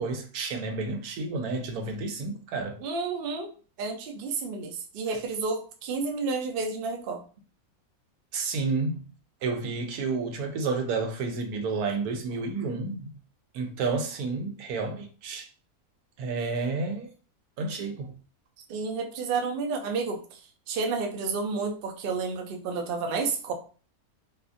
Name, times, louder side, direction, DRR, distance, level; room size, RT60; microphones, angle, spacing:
voice 1, 0.0-2.8 8.3-9.0 9.4-13.1 13.5-15.5 16.2-17.1 17.6-18.1, right 4 dB, 85° right, 1.1 m, -30 dB
voice 2, 2.8-7.2 18.7-20.4 20.7-23.5, right 4 dB, 65° right, 0.5 m, -31 dB
2.8 x 2.4 x 2.5 m
omnidirectional pair, 1.6 m